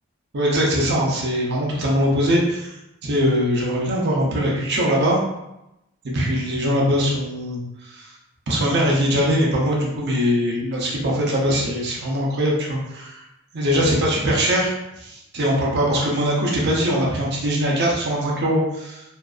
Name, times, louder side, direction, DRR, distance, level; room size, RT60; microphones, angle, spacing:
voice 1, 0.3-2.7 3.0-5.2 6.1-7.6 7.8-8.1 8.5-13.2 13.5-19.0, equal, 55° right, -3 dB, 0.6 m, -21 dB
2.6 x 2.3 x 2.3 m, 0.89 s
head